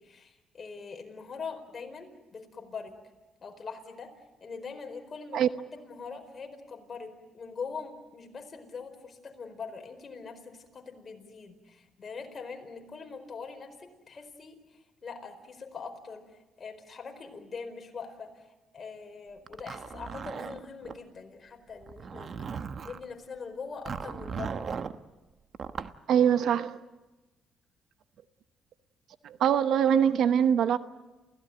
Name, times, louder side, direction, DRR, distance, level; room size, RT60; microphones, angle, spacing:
voice 1, 0.0-2.9 3.4-4.1 4.4-5.4 5.8-16.2 16.6-18.5 18.7-22.5 22.8-24.6, left 5 dB, 40° left, 4 dB, 4.8 m, -42 dB
Zipper (clothing), 19.5-21.0 21.8-23.0 23.9-25.0 25.5-26.0, right 6 dB, 50° right, 1.0 m, -37 dB
voice 2, 26.1-26.8 29.2-30.8, right 8 dB, 75° right, 12 dB, 1.0 m, -23 dB
28.5 x 17.0 x 9.2 m, 1.1 s
cardioid pair, 90°, 0 cm